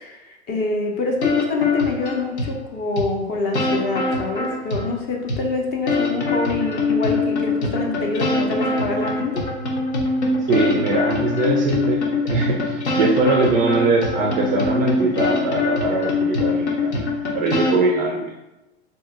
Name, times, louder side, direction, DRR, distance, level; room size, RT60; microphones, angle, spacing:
voice 1, 0.0-9.4, left 3 dB, 30° left, 1 dB, 0.6 m, -26 dB
sound 1, 1.2-2.5 3.0-3.1 3.5-4.9 5.3-5.4 5.9-17.8, left 3 dB, 75° left, 0.9 m, -23 dB
voice 2, 10.5-12.0 12.3-17.1 17.4-18.4, right 2 dB, 25° right, 0 dB, 0.4 m, -21 dB
2.8 x 2.8 x 3.6 m, 1.0 s
hypercardioid pair, 100°, 34 cm